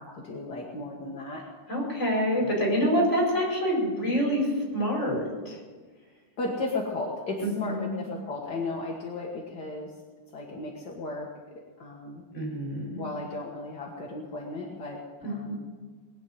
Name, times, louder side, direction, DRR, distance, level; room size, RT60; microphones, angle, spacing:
voice 1, 0.0-1.4 2.3-2.5 6.4-9.9 10.3-12.2 13.0-15.5, left 2 dB, 45° left, -2 dB, 1.6 m, -35 dB
voice 2, 1.7-5.6 7.4-8.0 12.3-13.0 15.2-15.6, equal, 20° left, -2 dB, 5.2 m, -27 dB
20.0 x 7.3 x 9.3 m, 1.4 s
omnidirectional pair, 3.7 m